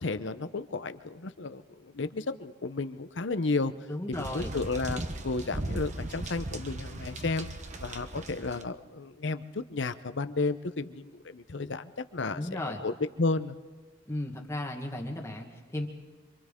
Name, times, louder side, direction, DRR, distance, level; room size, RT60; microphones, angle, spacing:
voice 1, 0.0-3.7 4.1-7.5 7.8-12.9 13.2-13.6, left 3 dB, 65° left, 11 dB, 0.8 m, -33 dB
voice 2, 3.9-4.5 12.3-12.8 14.1-15.9, left 1 dB, 15° left, 1 dB, 1.5 m, -35 dB
sound 1, 4.1-8.6, right 2 dB, 40° right, 1.1 m, -37 dB
27.5 x 25.0 x 3.7 m, 1.3 s
head